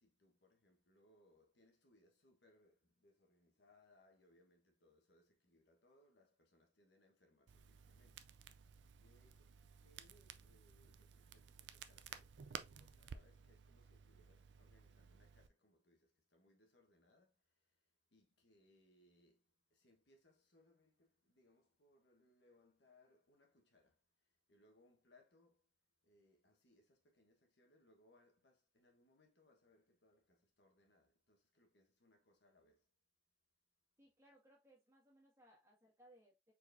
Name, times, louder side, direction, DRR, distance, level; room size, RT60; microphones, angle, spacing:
voice 1, 0.0-25.8 26.0-32.9, left 1 dB, 75° left, 1.3 m, -73 dB
Crackle, 7.5-15.5, right 7 dB, 80° right, 0.4 m, -56 dB
voice 2, 34.0-36.5, right 1 dB, 15° right, 1.9 m, -67 dB
4.6 x 4.1 x 2.6 m
head